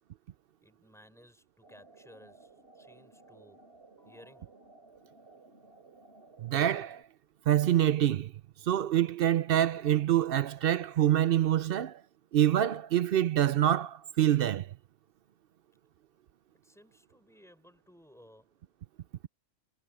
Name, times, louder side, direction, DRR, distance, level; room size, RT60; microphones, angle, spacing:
voice 1, 0.6-4.7 16.6-18.5, equal, ahead, 4.4 m, -58 dB
sound 1, 1.6-7.0, right 3 dB, 45° right, 4.1 m, -57 dB
voice 2, 6.4-7.0 7.5-8.3 8.6-12.0 12.3-14.7, right 11 dB, 65° right, 0.6 m, -26 dB
omnidirectional pair, 1.5 m